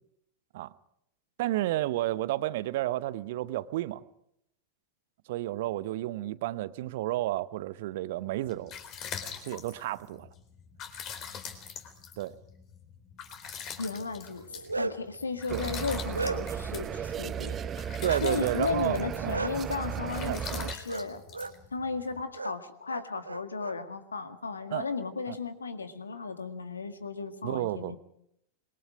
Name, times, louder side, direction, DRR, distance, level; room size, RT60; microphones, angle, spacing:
voice 1, 1.4-4.0 5.3-8.7 9.4-10.3 12.2-12.4 15.5-15.6 18.0-19.4 20.2-20.4 24.7-24.9 25.3-25.4 27.4-27.9, right 15 dB, 50° right, 0.9 m, -31 dB
sound 1, 8.3-22.2, left 7 dB, 35° left, 3.8 m, -44 dB
voice 2, 13.8-14.4 14.8-17.6 18.2-21.2 21.7-28.0, left 4 dB, 75° left, 1.9 m, -35 dB
Bark, 14.4-15.1 15.7-16.7 18.0-18.2 19.3-19.5 20.9-21.1 21.3-21.5 22.3-22.5 22.9-23.7, right 3 dB, 80° right, 0.8 m, -34 dB
sound 2, 15.5-20.7, right 8 dB, 25° right, 1.0 m, -35 dB
26.5 x 22.5 x 5.0 m
figure-of-eight pair, 90°, 0 cm